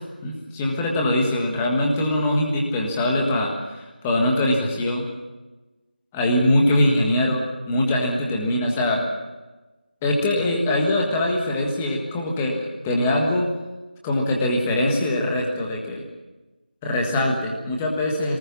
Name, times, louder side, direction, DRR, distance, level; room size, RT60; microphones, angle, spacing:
voice 1, 0.0-5.0 6.1-9.0 10.0-13.4 14.0-16.0 16.8-18.4, left 1 dB, 5° left, 0 dB, 1.5 m, -22 dB
23.5 x 19.5 x 7.3 m, 1.1 s
figure-of-eight pair, 175°, 5 cm